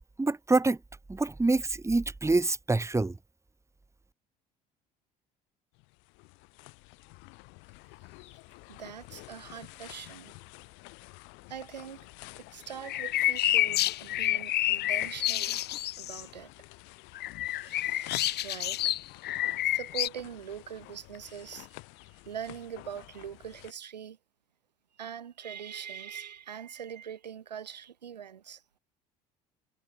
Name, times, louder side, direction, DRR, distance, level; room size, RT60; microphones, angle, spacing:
voice 1, 0.2-0.8 1.1-3.2, right 3 dB, 15° right, 2.3 m, -26 dB
sound 1, 5.7-23.7, left 29 dB, 70° left, 4.5 m, -49 dB
voice 2, 8.7-10.3 11.5-12.1 12.4-15.6 16.0-16.5 17.6-18.9 19.6-21.8 22.2-24.2 25.0-28.6, right 8 dB, 90° right, 3.1 m, -42 dB
sound 2, 12.9-16.2 17.1-20.1, left 14 dB, 55° left, 1.2 m, -29 dB
hypercardioid pair, 65°, 21 cm